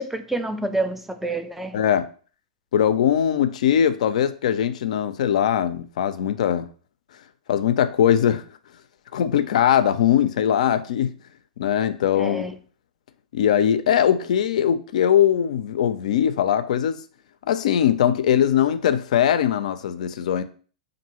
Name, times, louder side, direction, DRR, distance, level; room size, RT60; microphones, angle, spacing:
voice 1, 0.0-1.8 12.2-12.6, right 2 dB, 5° right, 0.3 m, -28 dB
voice 2, 1.7-2.1 2.7-6.7 7.5-8.4 9.1-11.1 11.6-12.6 13.3-17.0 17.5-20.4, left 9 dB, 65° left, 0.4 m, -21 dB
5.2 x 2.6 x 2.9 m
hypercardioid pair, 110°, 4 cm